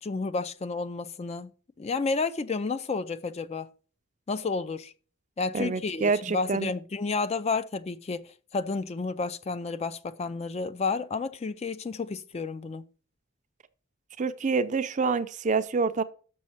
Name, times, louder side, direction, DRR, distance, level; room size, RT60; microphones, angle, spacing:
voice 1, 0.0-1.5 1.8-3.7 4.3-4.9 5.4-12.8, left 4 dB, 30° left, 0.3 m, -31 dB
voice 2, 5.5-6.7 14.2-16.0, right 4 dB, 35° right, 0.4 m, -27 dB
6.3 x 6.3 x 5.7 m
head